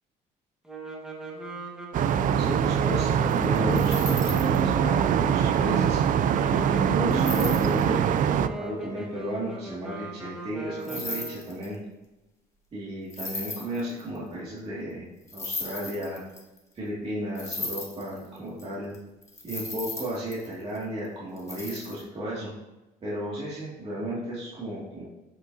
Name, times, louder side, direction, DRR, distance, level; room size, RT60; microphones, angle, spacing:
sound 1, 0.6-11.6, right 2 dB, 5° right, 1.5 m, -38 dB
sound 2, 1.9-8.5, right 8 dB, 50° right, 0.4 m, -23 dB
voice 1, 2.4-6.0 6.5-8.2 8.6-11.8 12.7-15.1 15.3-16.2 16.7-18.9 19.4-22.5 23.0-25.1, equal, 35° right, -8 dB, 2.1 m, -34 dB
sound 3, 3.3-4.6 7.1-7.8 10.8-11.8 13.1-14.2 15.3-16.6 17.4-18.6 18.9-19.0 19.2-20.8 21.4-22.0, left 2 dB, 15° left, 1.4 m, -36 dB
8.1 x 5.5 x 2.7 m, 1.0 s
cardioid pair, 110°, 17 cm